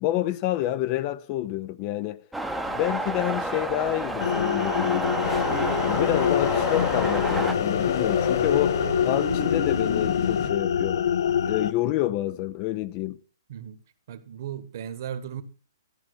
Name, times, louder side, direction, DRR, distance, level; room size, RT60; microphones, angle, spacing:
voice 1, 0.0-2.2 2.6-5.3 5.8-11.0 11.4-13.2, left 14 dB, 25° left, 0.5 m, -28 dB
sound 1, 2.3-7.5, right 2 dB, ahead, 0.8 m, -30 dB
sound 2, 4.2-11.7, left 8 dB, 70° left, 0.6 m, -26 dB
sound 3, 5.2-10.5, left 6 dB, 45° left, 1.7 m, -29 dB
voice 2, 14.1-15.4, right 9 dB, 45° right, 1.3 m, -36 dB
13.5 x 6.0 x 6.3 m
hypercardioid pair, 165°, 2 cm